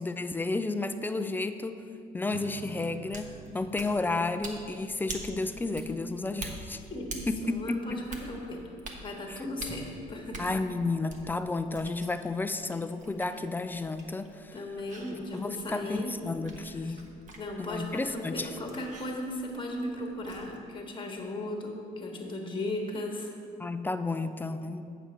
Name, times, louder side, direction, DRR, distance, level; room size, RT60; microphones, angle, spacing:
voice 1, 0.0-1.8 2.1-6.8 7.3-8.0 9.3-9.4 10.4-14.5 15.1-17.0 17.6-18.5 23.6-24.9, left 3 dB, 10° left, 10 dB, 0.4 m, -32 dB
Acoustic guitar / Strum, 2.3-8.2, right 7 dB, 80° right, 0.5 m, -51 dB
sound 1, 3.0-20.6, right 2 dB, 45° right, 1.1 m, -47 dB
voice 2, 6.9-8.7 9.0-10.4 14.5-16.2 16.8-17.0 17.3-23.3, left 1 dB, 30° left, 1 dB, 1.4 m, -36 dB
8.2 x 7.0 x 4.4 m, 2.5 s
cardioid pair, 110°, 17 cm